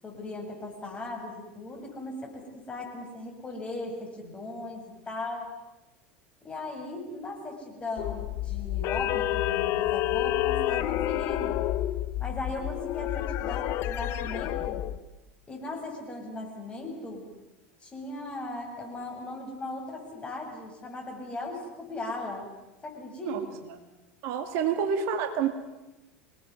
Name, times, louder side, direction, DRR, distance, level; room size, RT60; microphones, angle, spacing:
voice 1, 0.0-5.5 6.4-11.6 12.2-14.8 15.5-17.3 17.8-22.5 22.8-23.7, left 2 dB, 20° left, 1 dB, 7.9 m, -38 dB
sound 1, 8.0-15.0, left 14 dB, 45° left, 1.1 m, -29 dB
voice 2, 24.2-25.5, right 7 dB, 50° right, 7 dB, 2.2 m, -28 dB
26.5 x 19.5 x 9.7 m, 1.1 s
figure-of-eight pair, 75°, 6 cm